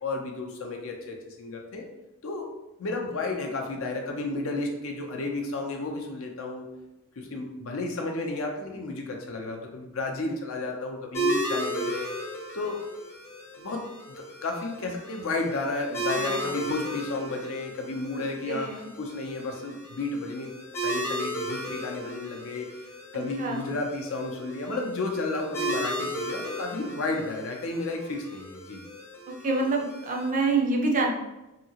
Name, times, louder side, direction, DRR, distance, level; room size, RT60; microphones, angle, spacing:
voice 1, 0.0-1.9 2.2-2.5 2.8-6.7 7.2-12.1 12.5-12.8 13.6-13.9 14.2-20.5 20.8-22.8 23.1-28.8, left 2 dB, 65° left, 2 dB, 0.6 m, -32 dB
sound 1, 11.1-30.3, right 1 dB, 15° left, 0.6 m, -35 dB
voice 2, 16.1-16.6 18.5-18.9 23.1-23.7 29.3-31.1, right 3 dB, 35° right, 0 dB, 0.4 m, -27 dB
2.8 x 2.7 x 2.8 m, 0.97 s
head